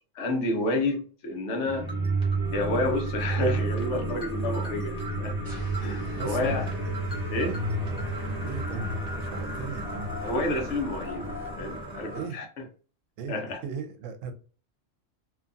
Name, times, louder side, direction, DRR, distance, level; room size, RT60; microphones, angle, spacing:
voice 1, 0.1-1.9 2.5-5.4 5.8-6.6 7.3-7.6 10.2-12.4 13.3-13.6, left 2 dB, 65° left, 3 dB, 1.0 m, -29 dB
sound 1, 1.6-12.3, right 2 dB, 5° right, 1.0 m, -31 dB
sound 2, 5.4-8.0, right 3 dB, 35° left, 0.8 m, -43 dB
voice 2, 6.0-6.8 8.4-10.2 12.1-12.4 13.2-14.3, right 6 dB, 80° right, 7 dB, 0.9 m, -38 dB
2.7 x 2.3 x 2.5 m, 0.38 s
omnidirectional pair, 1.3 m